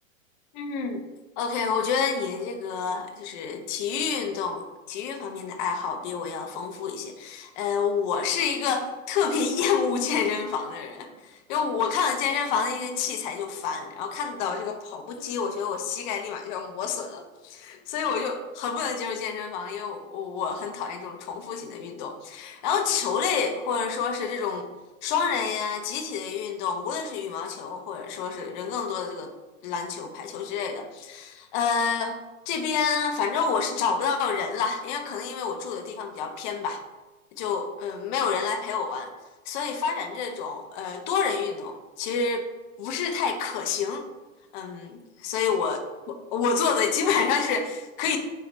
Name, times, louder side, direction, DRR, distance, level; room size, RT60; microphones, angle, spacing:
voice 1, 0.5-1.0 1.4-24.7 25.0-29.3 29.6-32.2 32.5-36.8 37.4-39.1 39.5-42.5 42.8-44.1 44.5-45.8 46.1-48.2, left 6 dB, 35° left, 6 dB, 0.6 m, -28 dB
4.2 x 3.8 x 3.2 m, 1.2 s
hypercardioid pair, 120°, 40 cm